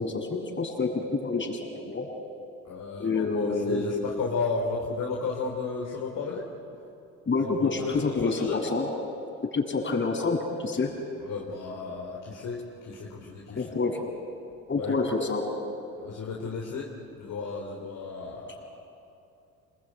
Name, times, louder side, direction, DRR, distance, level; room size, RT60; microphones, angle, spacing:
voice 1, 0.0-2.1 3.0-3.9 7.3-8.9 9.5-10.9 13.6-14.0 14.7-15.4, left 3 dB, 25° left, 1 dB, 7.3 m, -28 dB
voice 2, 2.6-6.5 7.4-7.7 8.0-8.6 11.2-13.7 14.7-15.1 16.0-16.9 17.2-18.7, left 4 dB, 45° left, -1 dB, 3.8 m, -34 dB
28.0 x 20.5 x 9.5 m, 2.7 s
hypercardioid pair, 60°, 42 cm